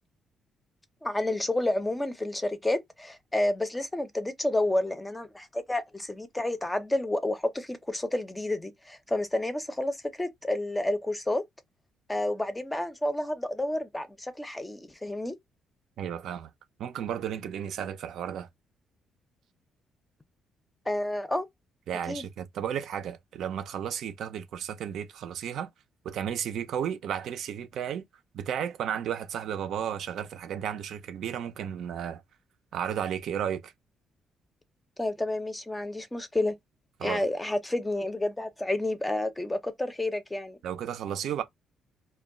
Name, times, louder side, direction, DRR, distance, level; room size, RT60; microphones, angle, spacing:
voice 1, 1.0-11.4 12.1-15.4 20.9-21.5 22.1-22.3 35.0-36.5 37.0-40.6, left 1 dB, 15° left, 0.5 m, -30 dB
voice 2, 16.0-16.5 16.8-18.5 21.9-25.7 26.0-28.0 28.3-32.2 32.7-33.7 37.0-37.2 40.6-41.4, right 9 dB, 75° right, 0.4 m, -33 dB
2.2 x 2.0 x 3.6 m
cardioid pair, 90°, 0 cm